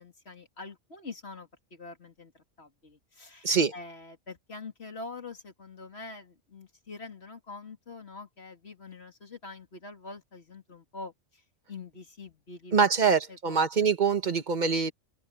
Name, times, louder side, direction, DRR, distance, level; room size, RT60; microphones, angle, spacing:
voice 1, 0.0-11.4 11.7-12.7 13.0-13.9, left 3 dB, 55° left, 3.3 m, -45 dB
voice 2, 12.7-14.9, right 5 dB, 40° right, 1.4 m, -24 dB
open air
omnidirectional pair, 1.3 m